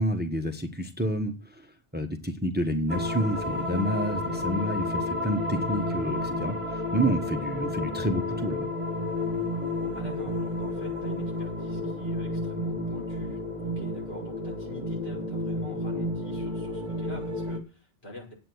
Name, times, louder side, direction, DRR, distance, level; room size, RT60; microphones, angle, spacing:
voice 1, 0.0-8.7, equal, 10° right, 6 dB, 1.1 m, -29 dB
sound 1, 2.9-17.6, left 1 dB, 30° right, 1.7 m, -31 dB
voice 2, 9.9-18.3, left 1 dB, 65° left, -2 dB, 6.3 m, -45 dB
8.8 x 8.7 x 7.9 m, 0.34 s
omnidirectional pair, 1.1 m